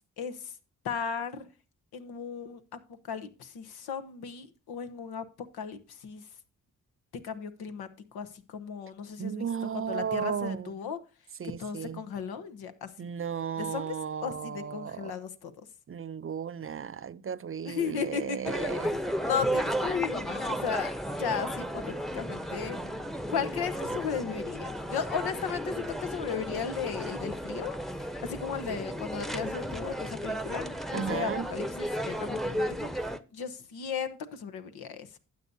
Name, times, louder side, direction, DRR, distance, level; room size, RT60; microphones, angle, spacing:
voice 1, 0.2-0.5 0.8-1.5 1.9-2.8 3.1-5.2 5.5-6.2 7.2-9.5 9.9-11.0 11.6-12.9 13.6-14.0 14.2-15.5 17.7-18.4 19.2-20.9 21.2-22.8 23.3-27.7 28.2-35.2, left 7 dB, 90° left, 0.9 m, -35 dB
voice 2, 9.2-10.8 11.4-12.0 13.0-15.1 15.9-19.0 30.9-31.5, right 7 dB, 35° right, 0.5 m, -35 dB
sound 1, 18.5-33.2, equal, ahead, 0.8 m, -34 dB
12.5 x 8.1 x 2.7 m
supercardioid pair, 45°, 37 cm